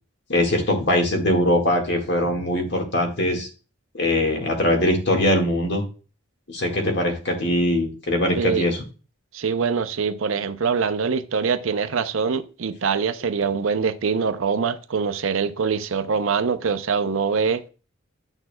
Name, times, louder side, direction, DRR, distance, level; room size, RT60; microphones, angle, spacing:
voice 1, 0.3-3.5 3.9-5.8 6.5-8.8, left 1 dB, 50° left, 1.7 m, -21 dB
voice 2, 9.3-17.7, right 5 dB, 70° right, 0.5 m, -24 dB
9.7 x 6.2 x 2.2 m
head